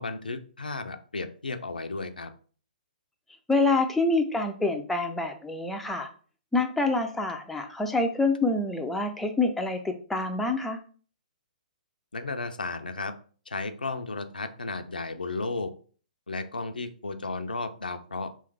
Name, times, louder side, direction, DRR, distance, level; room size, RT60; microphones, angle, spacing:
voice 1, 0.0-2.3 12.1-13.1 13.5-15.7 16.3-18.3, left 3 dB, 80° left, 8 dB, 0.5 m, -34 dB
voice 2, 3.5-6.1 6.5-10.8, left 2 dB, 5° left, 3 dB, 0.4 m, -26 dB
3.3 x 3.2 x 3.2 m, 0.41 s
figure-of-eight pair, 120°, 5 cm